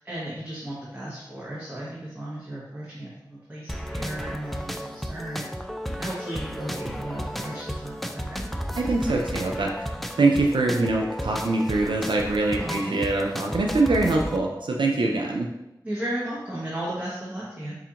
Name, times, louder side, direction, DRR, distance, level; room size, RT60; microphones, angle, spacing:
voice 1, 0.0-5.4 6.0-8.4 12.4-13.0 15.8-17.7, right 1 dB, 20° right, -7 dB, 0.9 m, -35 dB
sound 1, 3.7-14.4, equal, ahead, 0.3 m, -33 dB
voice 2, 8.8-9.7 10.2-15.5, right 2 dB, 80° right, 0 dB, 0.4 m, -23 dB
5.0 x 2.4 x 2.8 m, 0.92 s
wide cardioid pair, 50°, 8 cm